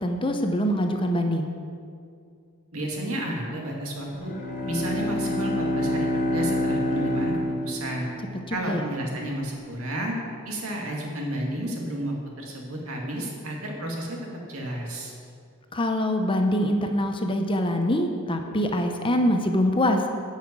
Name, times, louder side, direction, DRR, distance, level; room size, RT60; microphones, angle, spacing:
voice 1, 0.0-1.5 8.5-8.9 15.7-20.0, equal, 25° left, 5 dB, 0.7 m, -24 dB
voice 2, 2.7-4.3 4.7-8.1 8.5-10.2 10.4-14.2 14.5-15.1, right 1 dB, 65° right, -1 dB, 2.3 m, -31 dB
Bowed string instrument, 4.1-8.4, left 1 dB, 40° left, 2.0 m, -27 dB
11.0 x 5.7 x 8.7 m, 2.3 s
head